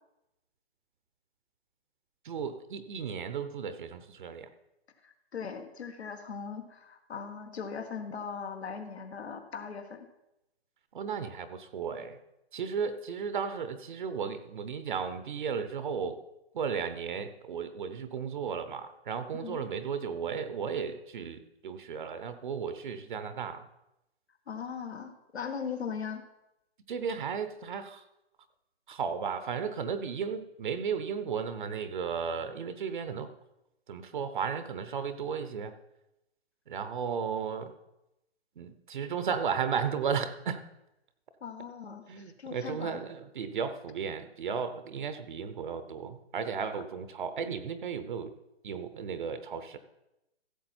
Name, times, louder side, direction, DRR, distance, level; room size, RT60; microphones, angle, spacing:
voice 1, 2.2-4.5 10.9-12.2 12.5-16.2 16.5-23.7 26.9-28.0 28.9-33.3 33.9-35.7 36.7-37.7 38.6-40.6 42.1-48.3 48.6-49.8, right 6 dB, 50° right, 11 dB, 0.9 m, -34 dB
voice 2, 5.0-10.1 19.3-19.6 24.5-26.2 41.4-43.0, left 6 dB, 80° left, 6 dB, 1.6 m, -39 dB
15.0 x 7.3 x 4.4 m, 0.90 s
hypercardioid pair, 160°, 32 cm